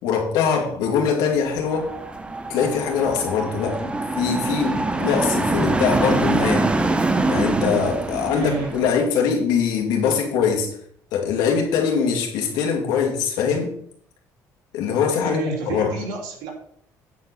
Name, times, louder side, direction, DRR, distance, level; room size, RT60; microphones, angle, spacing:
voice 1, 0.0-1.9 2.5-6.7 7.3-10.8 11.1-13.7 14.7-15.9, left 6 dB, 85° left, 1 dB, 2.5 m, -22 dB
sound 1, 1.5-8.9, right 2 dB, 15° right, 0.9 m, -24 dB
voice 2, 8.3-8.7 15.2-16.5, right 3 dB, 85° right, 1 dB, 2.9 m, -29 dB
9.4 x 4.7 x 6.2 m, 0.63 s
cardioid pair, 105°, 7 cm